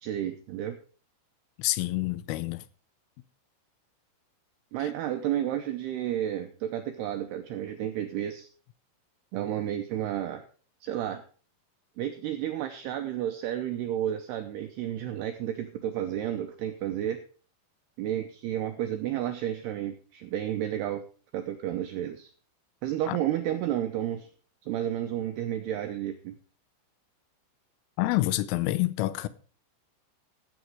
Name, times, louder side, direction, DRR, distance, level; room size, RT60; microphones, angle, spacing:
voice 1, 0.0-0.8 4.7-8.5 9.3-10.4 10.8-11.2 12.0-17.2 18.0-21.0 21.3-22.3 22.8-24.3 24.6-26.3, right 11 dB, 90° right, 2.3 m, -31 dB
voice 2, 1.6-2.6 23.1-23.2 28.0-29.3, left 17 dB, 85° left, 3.3 m, -27 dB
15.5 x 7.2 x 4.8 m
omnidirectional pair, 5.7 m